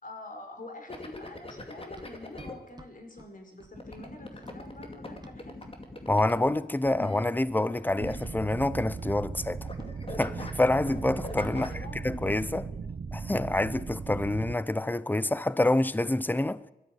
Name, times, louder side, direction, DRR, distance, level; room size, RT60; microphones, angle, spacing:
voice 1, 0.0-5.6 11.5-12.4 12.7-12.8, left 2 dB, 55° left, 5.0 m, -46 dB
sound 1, 0.9-2.5 3.7-8.8 9.1-9.4 9.7-11.9, left 2 dB, 35° left, 2.5 m, -42 dB
Run, 1.6-5.8 6.1-6.6 6.9-9.5 9.8-10.0, right 2 dB, 25° right, 1.6 m, -54 dB
voice 2, 6.1-9.7 10.2-12.6 13.1-16.6, left 1 dB, 10° left, 0.7 m, -27 dB
sound 2, 8.0-14.6, right 5 dB, 60° right, 1.0 m, -38 dB
21.0 x 13.0 x 9.4 m
wide cardioid pair, 95°, 16 cm